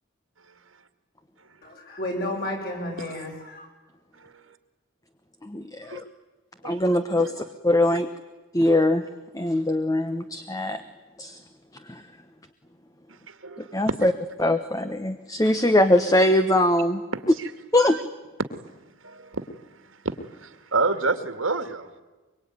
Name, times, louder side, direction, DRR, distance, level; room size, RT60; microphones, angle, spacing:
voice 1, 1.6-3.7, left 1 dB, 45° left, 1 dB, 7.5 m, -32 dB
voice 2, 5.5-6.0 6.6-7.3 7.6-8.1 8.5-9.0 9.3-10.8 11.2-11.4 11.9-12.0 13.7-14.1 14.4-17.0 17.7-18.0, left 1 dB, 15° left, 9 dB, 1.0 m, -21 dB
voice 3, 6.6-7.3 8.7-8.8 13.3-14.0 17.1-17.5 17.8-18.0 19.0-19.5 19.9-21.9, right 3 dB, 70° right, 9 dB, 2.2 m, -30 dB
24.0 x 23.5 x 9.6 m, 1.2 s
head